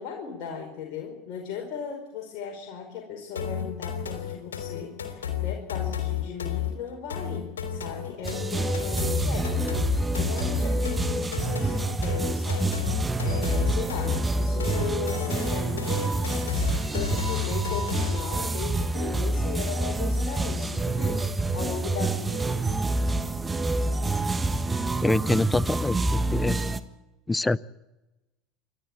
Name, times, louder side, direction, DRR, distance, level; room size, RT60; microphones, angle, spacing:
voice 1, 0.0-16.4 16.9-22.8, left 6 dB, 55° left, 0 dB, 5.0 m, -37 dB
sound 1, 3.4-18.4, left 9 dB, 85° left, 3.3 m, -32 dB
sound 2, 8.2-26.8, right 2 dB, 15° right, 1.5 m, -27 dB
voice 2, 25.0-26.6 27.3-27.6, left 2 dB, 15° left, 21 dB, 0.8 m, -25 dB
28.5 x 12.5 x 8.8 m, 1.0 s
hypercardioid pair, 80°, 0 cm